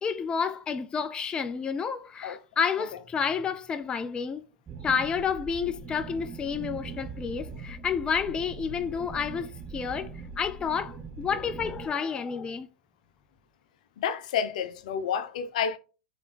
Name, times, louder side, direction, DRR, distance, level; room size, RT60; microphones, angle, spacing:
voice 1, 0.0-4.4 4.8-10.1 10.4-12.7, left 6 dB, 20° left, 0.4 m, -30 dB
sound 1, 4.7-11.9, right 4 dB, 20° right, 1.0 m, -41 dB
voice 2, 14.0-15.8, left 7 dB, 65° left, 0.6 m, -29 dB
4.0 x 3.3 x 3.7 m
hypercardioid pair, 100°, 4 cm